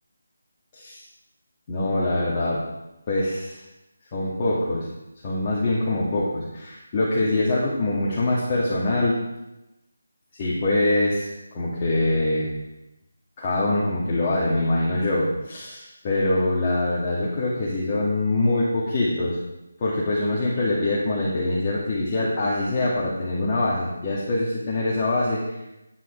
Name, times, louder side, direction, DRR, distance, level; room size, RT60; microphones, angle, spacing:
voice 1, 1.7-2.6 3.1-3.6 4.1-4.9 5.2-9.2 10.3-11.3 11.5-12.5 13.4-19.4 19.8-25.6, left 2 dB, 25° left, -7 dB, 2.1 m, -24 dB
9.8 x 9.2 x 4.6 m, 0.93 s
figure-of-eight pair, 160°, 0 cm